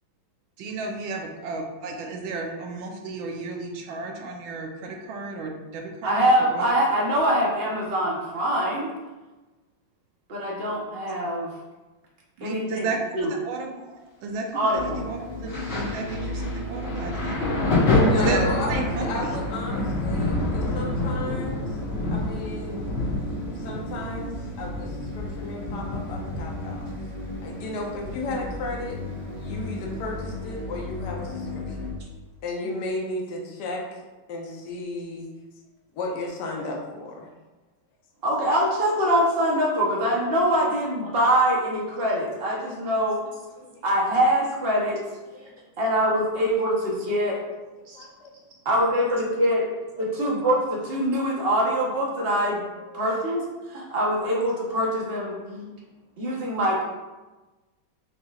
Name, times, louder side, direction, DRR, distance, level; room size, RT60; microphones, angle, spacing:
voice 1, 0.6-6.6 12.4-17.8 18.2-19.4, right 3 dB, 85° right, 2 dB, 1.4 m, -33 dB
voice 2, 6.0-8.9 10.3-11.5 12.4-12.9 13.1-13.3 14.5-15.0 38.2-43.2 43.8-45.0 45.8-47.4 47.9-48.0 48.6-49.6 50.0-52.6 52.9-53.4 53.7-55.7 56.2-56.8, equal, 45° right, -3 dB, 0.8 m, -23 dB
sound 1, 14.7-31.9, equal, 70° right, 1.8 m, -35 dB
Thunder, 15.5-28.8 29.1-30.4 31.3-31.4, left 2 dB, 85° left, 2.2 m, -28 dB
voice 3, 17.9-18.7 19.0-21.8 22.1-22.9 23.6-26.8 27.4-29.0 29.4-31.9 32.4-34.0 34.3-35.3 35.9-37.3 43.6-43.7 45.3-45.5 47.9-48.3 50.0-50.1 52.9-53.0, left 2 dB, 65° left, 0 dB, 1.3 m, -33 dB
6.5 x 3.0 x 2.3 m, 1.2 s
omnidirectional pair, 2.1 m